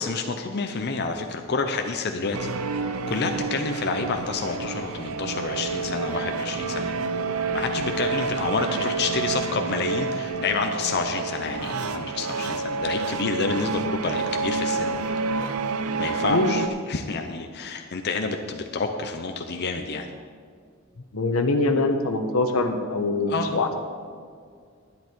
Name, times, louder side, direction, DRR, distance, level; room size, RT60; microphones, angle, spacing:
voice 1, 0.0-2.5 3.1-6.9 7.5-15.0 16.0-20.1 23.3-23.6, left 4 dB, 50° left, 5 dB, 0.7 m, -29 dB
sound 1, 2.3-16.7, right 4 dB, 90° right, 0.6 m, -29 dB
voice 2, 21.1-23.8, left 2 dB, 90° left, 6 dB, 1.1 m, -23 dB
11.0 x 10.5 x 4.5 m, 2.1 s
head